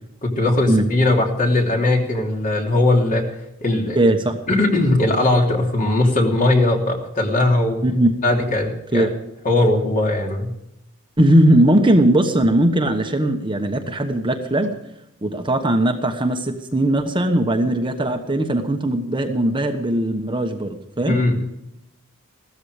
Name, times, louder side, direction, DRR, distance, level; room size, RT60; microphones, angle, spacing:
voice 1, 0.2-3.3 3.6-4.0 4.5-7.8 8.2-9.1 9.4-10.5 21.1-21.4, left 2 dB, 40° left, 1 dB, 3.0 m, -19 dB
voice 2, 3.9-4.4 7.8-8.1 8.9-9.1 11.2-14.8 15.2-21.2, right 1 dB, 25° right, 5 dB, 1.2 m, -19 dB
15.5 x 13.5 x 5.0 m, 0.84 s
head